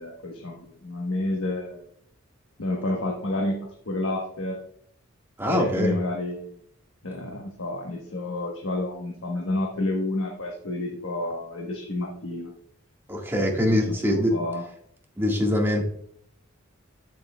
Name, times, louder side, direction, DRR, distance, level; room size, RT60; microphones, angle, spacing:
voice 1, 0.0-1.9 2.6-3.6 3.8-4.6 5.4-6.5 7.0-12.5 13.4-14.6, left 2 dB, 80° left, 0 dB, 1.2 m, -30 dB
voice 2, 5.4-5.9 13.1-14.3 15.2-15.9, equal, 10° right, 0 dB, 1.6 m, -23 dB
8.1 x 7.7 x 2.3 m, 0.66 s
head